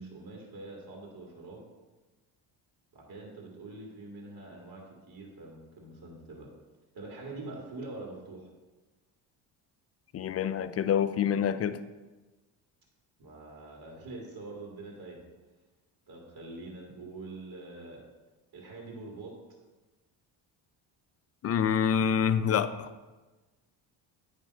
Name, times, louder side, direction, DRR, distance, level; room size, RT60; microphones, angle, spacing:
voice 1, 0.0-1.7 2.9-6.5 6.9-8.5 13.2-15.3 16.1-18.0 18.5-19.3, right 2 dB, 45° right, -1 dB, 2.2 m, -44 dB
voice 2, 10.1-11.8 21.4-22.9, left 8 dB, 35° left, 13 dB, 0.4 m, -27 dB
9.0 x 3.4 x 5.4 m, 1.2 s
supercardioid pair, 75°, 47 cm